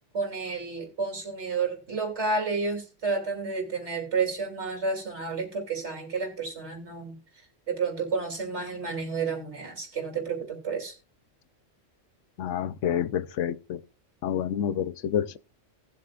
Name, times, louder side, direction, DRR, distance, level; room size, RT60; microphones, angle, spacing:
voice 1, 0.1-7.2 7.7-10.9, right 4 dB, 65° right, 3.1 m, -31 dB
voice 2, 12.4-13.8 14.2-15.4, left 9 dB, 90° left, 1.0 m, -28 dB
18.5 x 7.5 x 2.4 m
omnidirectional pair, 1.2 m